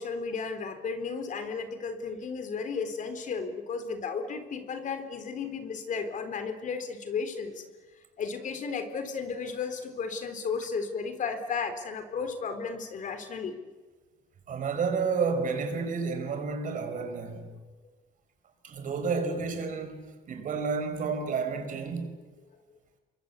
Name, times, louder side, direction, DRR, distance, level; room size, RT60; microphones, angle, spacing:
voice 1, 0.0-7.6 8.2-13.6, left 5 dB, 50° left, 3.8 m, -34 dB
voice 2, 14.5-17.5 18.6-22.1, right 5 dB, 50° right, 5.4 m, -31 dB
28.0 x 23.0 x 8.4 m
cardioid pair, 110°, 17 cm